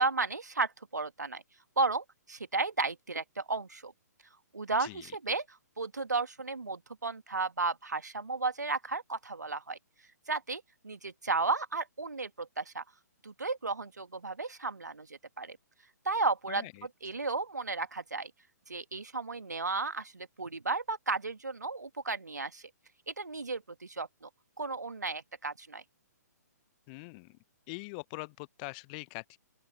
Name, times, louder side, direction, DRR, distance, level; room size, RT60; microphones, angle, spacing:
voice 1, 0.0-1.4 1.8-3.9 4.5-5.5 5.8-9.8 10.3-12.8 13.2-15.6 16.1-16.7 17.0-18.3 18.7-22.6 23.1-24.3 24.6-25.8, right 3 dB, 75° right, 2.0 m, -33 dB
voice 2, 4.8-5.2 16.5-16.9 26.9-27.4 27.7-29.4, left 30 dB, 25° left, 0.8 m, -43 dB
open air
figure-of-eight pair, 125°, 9 cm